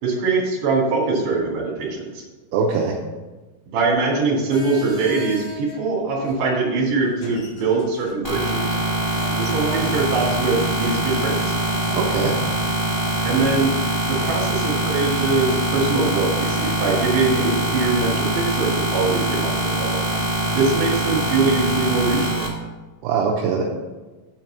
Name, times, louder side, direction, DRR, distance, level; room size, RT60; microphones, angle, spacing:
voice 1, 0.0-2.2 3.7-8.8 9.3-11.5 13.2-13.7 14.1-20.0 20.5-22.5, right 3 dB, 50° right, -4 dB, 3.3 m, -22 dB
voice 2, 2.5-3.0 12.0-12.4 23.0-23.6, right 5 dB, 75° right, -2 dB, 2.4 m, -21 dB
sound 1, 4.5-18.3, left 1 dB, 60° left, 2.1 m, -42 dB
sound 2, 8.2-22.5, right 1 dB, 80° left, 0.5 m, -23 dB
7.8 x 4.6 x 7.1 m, 1.2 s
omnidirectional pair, 5.3 m